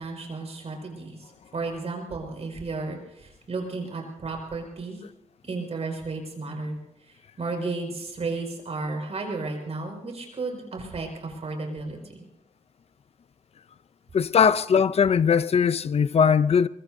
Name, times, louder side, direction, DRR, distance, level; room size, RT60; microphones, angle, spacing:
voice 1, 0.0-5.0 5.4-12.2, right 3 dB, 50° right, 5.4 m, -33 dB
voice 2, 14.1-16.7, left 6 dB, 50° left, 0.5 m, -20 dB
24.0 x 22.5 x 2.7 m
wide cardioid pair, 125°, 13 cm